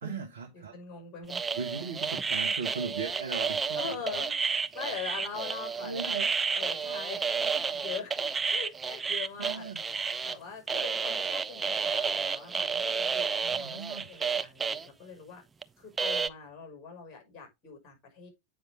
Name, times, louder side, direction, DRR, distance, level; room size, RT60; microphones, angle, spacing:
voice 1, 0.0-0.8 1.5-3.9 5.4-5.5 5.8-6.3 9.4-9.8 13.5-14.1, right 5 dB, 65° right, 1.3 m, -38 dB
voice 2, 0.5-1.4 1.8-1.9 3.7-6.1 6.5-9.7 10.2-15.4 15.8-18.3, left 6 dB, 30° left, 5.9 m, -42 dB
sound 1, 1.3-10.4 10.7-14.9 15.6-15.7 16.0-16.3, right 5 dB, 15° right, 0.4 m, -31 dB
8.8 x 5.2 x 3.8 m
figure-of-eight pair, 90°, 0 cm